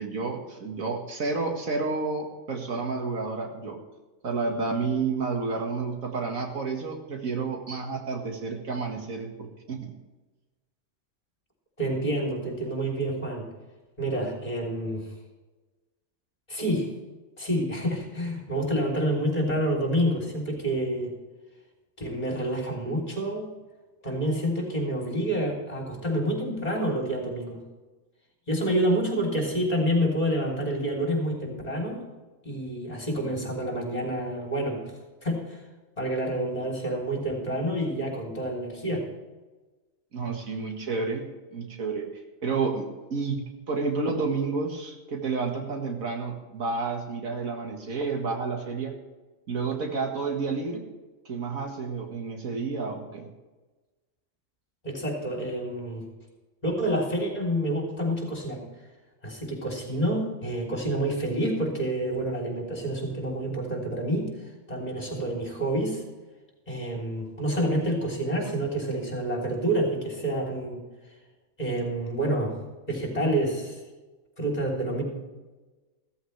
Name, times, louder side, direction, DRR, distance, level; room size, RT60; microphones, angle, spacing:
voice 1, 0.0-3.8 4.2-9.9 40.1-41.2 41.5-42.1 42.4-43.4 43.7-48.9 49.5-50.8 51.3-53.3, right 4 dB, 80° right, 2 dB, 2.2 m, -30 dB
voice 2, 11.8-13.5 14.0-15.1 16.5-16.9 17.4-21.1 22.0-23.5 24.0-27.6 28.5-32.0 32.4-34.8 35.2-35.6 36.0-39.1 54.8-56.0 56.6-58.6 59.2-66.0 66.7-70.8 71.6-72.6 72.9-73.8 74.4-75.0, right 1 dB, 30° left, 0 dB, 3.7 m, -28 dB
15.0 x 14.5 x 3.4 m, 1.2 s
omnidirectional pair, 1.4 m